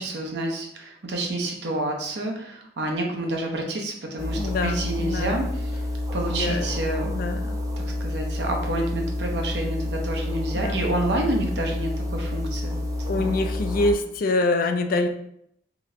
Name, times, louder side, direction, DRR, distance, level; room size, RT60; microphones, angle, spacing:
voice 1, 0.0-5.8 6.1-7.1 8.0-13.4, right 1 dB, 75° right, 1 dB, 0.8 m, -29 dB
sound 1, 4.2-13.9, left 1 dB, 20° right, 0.4 m, -29 dB
voice 2, 4.4-5.4 6.3-6.7 7.0-7.6 10.5-10.9 13.1-15.1, left 2 dB, 55° left, 7 dB, 0.4 m, -25 dB
3.1 x 2.9 x 3.7 m, 0.73 s
head